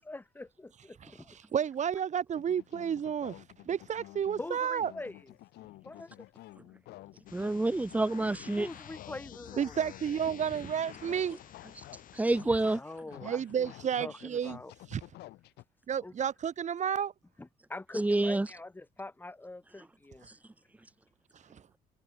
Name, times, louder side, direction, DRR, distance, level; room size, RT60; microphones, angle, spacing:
voice 1, 0.0-1.4 4.4-5.3 5.8-6.2 8.6-9.7 12.7-13.7 14.0-14.7 16.0-16.1 17.4-20.3, left 2 dB, 10° left, 1.6 m, -44 dB
voice 2, 1.5-4.9 9.6-11.4 13.2-14.6 14.9-15.0 15.9-17.1 21.5-21.6, right 8 dB, 45° right, 3.0 m, -31 dB
sound 1, 2.3-15.6, left 17 dB, 90° left, 2.7 m, -51 dB
sound 2, 7.3-12.2, left 10 dB, 55° left, 3.3 m, -50 dB
voice 3, 7.3-8.7 12.2-12.8 17.9-18.5, right 2 dB, 10° right, 1.0 m, -28 dB
cardioid pair, 115°, 17 cm